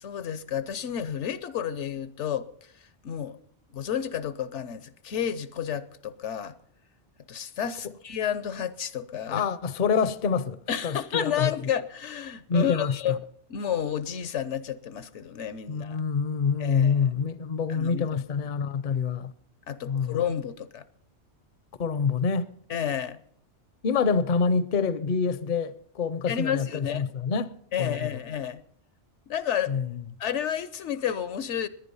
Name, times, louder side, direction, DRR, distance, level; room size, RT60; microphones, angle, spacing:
voice 1, 0.0-2.5 3.0-3.4 3.7-6.5 7.3-9.4 10.7-13.2 13.5-16.0 16.6-17.0 17.7-18.1 19.7-20.9 22.7-23.2 26.3-27.1 27.7-28.6 29.3-29.7 30.2-31.7, left 9 dB, 75° left, 1.1 m, -31 dB
voice 2, 9.3-11.5 12.5-13.0 15.7-19.3 19.9-20.2 21.8-22.5 23.8-28.2 29.7-30.0, left 5 dB, 45° left, 0.7 m, -26 dB
18.0 x 11.0 x 5.5 m
omnidirectional pair, 1.2 m